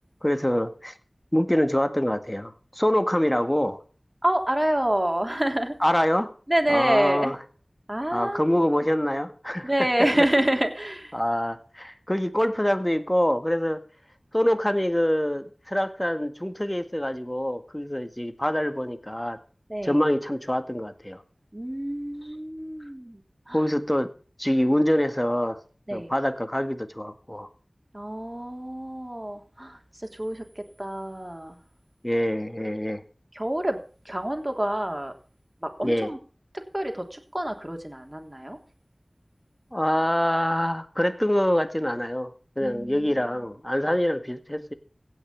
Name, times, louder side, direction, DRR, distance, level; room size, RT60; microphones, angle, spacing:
voice 1, 0.2-0.9 1.3-3.8 5.8-6.3 6.7-7.4 8.1-9.7 11.1-13.8 14.3-19.4 19.8-21.2 23.5-24.1 24.4-25.6 25.9-27.5 32.0-33.0 35.8-36.1 39.7-44.7, equal, 15° left, 1.8 m, -25 dB
voice 2, 4.2-5.7 6.5-7.4 7.9-8.6 9.6-11.1 19.7-20.0 21.5-23.2 23.5-23.6 25.9-26.1 27.9-31.6 33.3-33.8 34.0-35.1 35.6-36.2 36.7-38.6 42.6-43.1, right 1 dB, 25° right, 3.3 m, -27 dB
17.0 x 5.9 x 8.5 m
wide cardioid pair, 40°, 0 cm